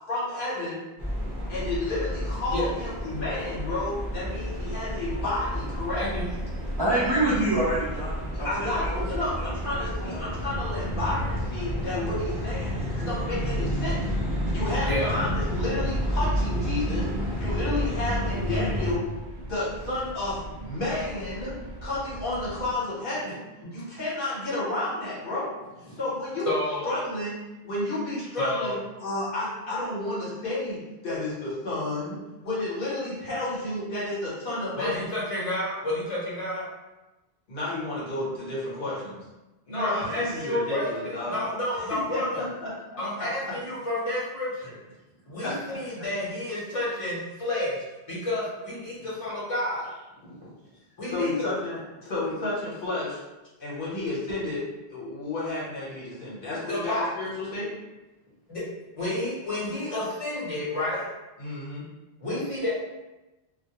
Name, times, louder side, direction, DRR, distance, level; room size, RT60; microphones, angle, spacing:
voice 1, 0.1-0.8 1.5-6.0 8.4-14.0 14.5-17.1 17.4-19.1 19.4-23.4 23.7-25.5 26.0-26.5 26.8-27.4 27.6-35.0 37.5-39.2 39.7-41.5 41.8-43.3 45.4-45.6 51.1-53.2 53.6-57.7 61.4-61.8, left 2 dB, 60° left, -8 dB, 1.1 m, -31 dB
sound 1, 1.0-18.9, equal, ahead, 0.8 m, -30 dB
sound 2, 4.0-22.7, right 2 dB, 85° right, 0.8 m, -42 dB
voice 2, 6.0-6.3 14.9-15.1 23.6-23.7 26.4-26.9 28.4-28.8 34.7-36.7 39.7-42.5 43.0-44.8 45.3-49.9 50.4-50.5 51.0-51.3 56.7-57.1 58.5-58.6 58.9-61.1 62.2-62.7, left 1 dB, 35° left, -8 dB, 0.8 m, -30 dB
voice 3, 6.8-9.0 9.4-10.3, right 1 dB, 35° right, -10 dB, 0.4 m, -27 dB
2.2 x 2.1 x 2.8 m, 1.1 s
omnidirectional pair, 1.1 m